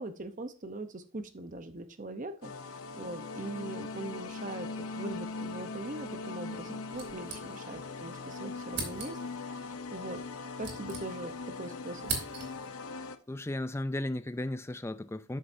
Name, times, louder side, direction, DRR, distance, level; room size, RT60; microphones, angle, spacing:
voice 1, 0.0-2.5 3.0-4.7 5.0-9.2 9.4-9.6 9.9-10.2 10.6-12.1, right 2 dB, 35° right, 0.8 m, -41 dB
sound 1, 2.4-13.2, left 4 dB, 80° left, 0.8 m, -40 dB
sound 2, 6.9-7.9 8.2-8.3 8.7-9.4 10.2-11.5 11.8-12.8, right 4 dB, 50° right, 3.0 m, -40 dB
voice 2, 13.3-15.4, left 1 dB, 10° left, 0.4 m, -35 dB
12.5 x 6.4 x 2.7 m
head